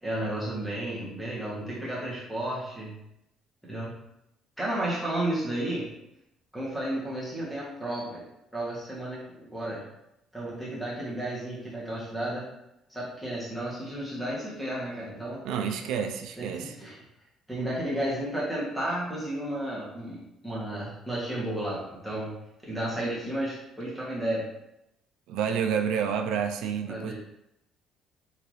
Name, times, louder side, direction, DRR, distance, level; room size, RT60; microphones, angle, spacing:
voice 1, 0.0-2.9 3.7-3.9 4.6-5.9 6.5-8.2 8.5-9.8 10.3-12.4 12.9-15.4 16.4-16.5 16.8-16.9 17.5-22.3 22.6-24.4 26.9-27.1, right 1 dB, ahead, -7 dB, 1.2 m, -32 dB
voice 2, 15.4-16.8 25.3-27.1, right 7 dB, 80° right, 5 dB, 0.3 m, -29 dB
3.9 x 2.8 x 3.1 m, 0.86 s
cardioid pair, 150°, 0 cm